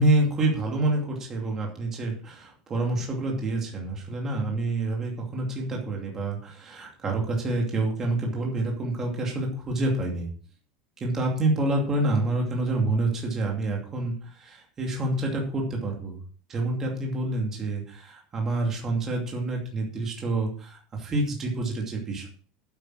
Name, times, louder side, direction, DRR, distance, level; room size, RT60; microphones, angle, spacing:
voice 1, 0.0-10.3 11.0-16.2 16.5-22.3, right 2 dB, 15° right, -1 dB, 2.5 m, -27 dB
9.0 x 8.2 x 4.9 m, 0.41 s
supercardioid pair, 180°, 2 cm